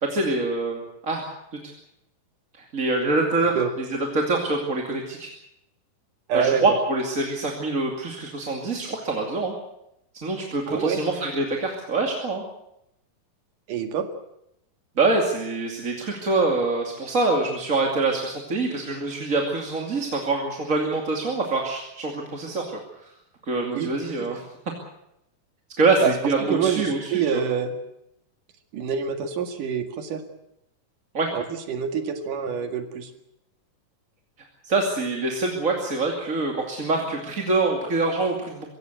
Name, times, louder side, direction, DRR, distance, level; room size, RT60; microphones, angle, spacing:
voice 1, 0.0-1.3 2.5-3.9 4.1-5.3 6.3-9.5 10.2-12.4 15.0-22.7 23.0-23.1 23.4-24.4 25.8-27.4 31.1-31.3 34.6-38.6, right 3 dB, 25° right, 1 dB, 2.5 m, -25 dB
voice 2, 6.3-6.8 10.7-11.0 13.7-14.1 23.7-23.9 24.2-24.3 26.0-27.8 28.7-30.2 31.3-33.1, right 7 dB, 70° right, 6 dB, 3.6 m, -26 dB
24.5 x 16.5 x 8.0 m, 0.81 s
omnidirectional pair, 3.9 m